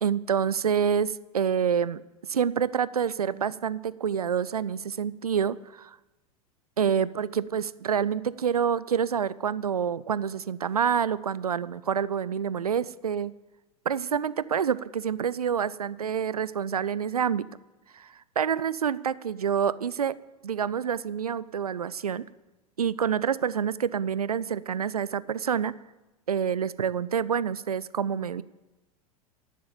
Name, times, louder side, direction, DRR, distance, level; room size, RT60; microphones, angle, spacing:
voice 1, 0.0-2.0 2.3-6.0 6.8-13.3 13.9-17.5 17.9-22.3 22.8-25.7 26.3-28.4, right 7 dB, 75° right, 19 dB, 0.5 m, -27 dB
11.0 x 10.0 x 8.8 m, 1.1 s
figure-of-eight pair, 90°, 19 cm